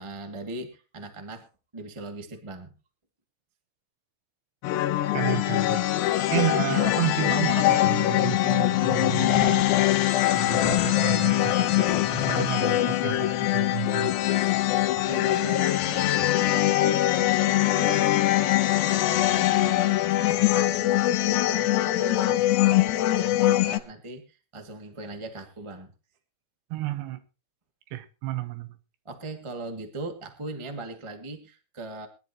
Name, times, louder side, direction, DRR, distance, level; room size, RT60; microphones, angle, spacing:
voice 1, 0.0-2.7 14.9-18.0 18.3-25.9 29.0-32.1, right 2 dB, 25° right, 0.6 m, -39 dB
sound 1, 4.6-23.8, left 15 dB, 90° left, 3.0 m, -23 dB
voice 2, 5.1-5.9 6.3-9.7 10.3-14.2 26.7-27.2 27.9-28.7, right 15 dB, 80° right, 3.3 m, -31 dB
21.5 x 11.5 x 3.0 m
omnidirectional pair, 4.9 m